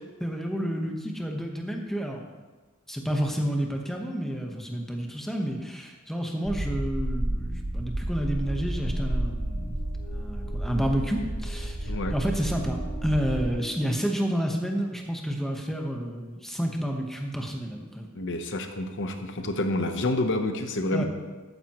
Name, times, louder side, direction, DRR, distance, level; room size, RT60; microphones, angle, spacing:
voice 1, 0.2-2.3 2.9-9.8 10.1-18.1 20.9-21.0, equal, ahead, 1 dB, 1.1 m, -30 dB
sound 1, 6.5-13.5, right 1 dB, 25° right, 0.6 m, -31 dB
sound 2, 8.0-15.0, right 3 dB, 85° left, 2.1 m, -47 dB
voice 2, 18.1-21.0, left 1 dB, 60° left, 6 dB, 0.9 m, -28 dB
13.0 x 9.4 x 3.1 m, 1.3 s
head